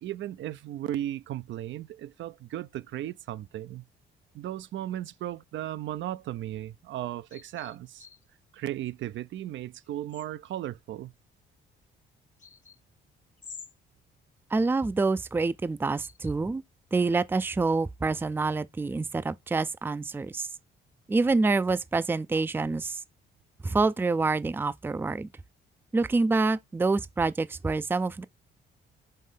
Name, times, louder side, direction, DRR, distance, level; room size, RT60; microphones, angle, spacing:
voice 1, 0.0-3.9 4.3-8.1 8.5-11.1, right 13 dB, 70° right, 0.5 m, -36 dB
sound 1, 7.3-8.2 9.9-10.5 12.4-12.8 13.4-13.7 14.7-14.9 15.9-16.3 17.0-17.1, left 6 dB, 40° left, 0.9 m, -48 dB
voice 2, 14.5-16.6 16.9-20.5 21.1-23.0 23.6-25.3 25.9-28.2, right 3 dB, 10° right, 0.4 m, -27 dB
5.6 x 3.1 x 5.5 m
cardioid pair, 90°, 20 cm